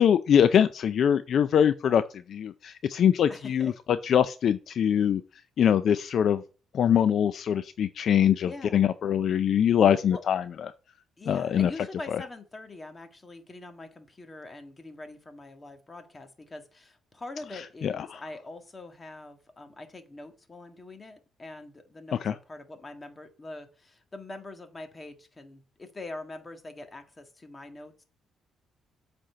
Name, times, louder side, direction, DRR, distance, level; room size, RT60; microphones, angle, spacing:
voice 1, 0.0-2.0 2.3-3.7 4.0-5.2 5.6-6.4 6.7-10.4 11.3-11.7 12.1-12.2 17.8-18.2 22.2-22.3, left 8 dB, 65° left, 12 dB, 0.4 m, -23 dB
voice 2, 3.3-3.7 8.5-8.8 10.1-10.2 11.2-28.0, left 2 dB, 25° left, 6 dB, 1.7 m, -43 dB
7.8 x 4.3 x 6.5 m, 0.35 s
cardioid pair, 90°, 0 cm